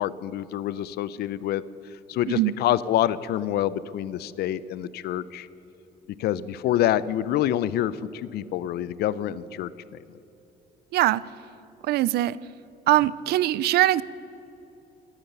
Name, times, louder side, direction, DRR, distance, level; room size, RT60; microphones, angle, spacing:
voice 1, 0.0-1.6 2.1-5.5 6.2-10.0, left 12 dB, 70° left, 18 dB, 0.6 m, -27 dB
voice 2, 10.9-11.2 11.9-12.4 12.9-14.0, right 15 dB, 70° right, 20 dB, 0.5 m, -21 dB
18.0 x 9.9 x 6.8 m, 2.9 s
cardioid pair, 110°, 17 cm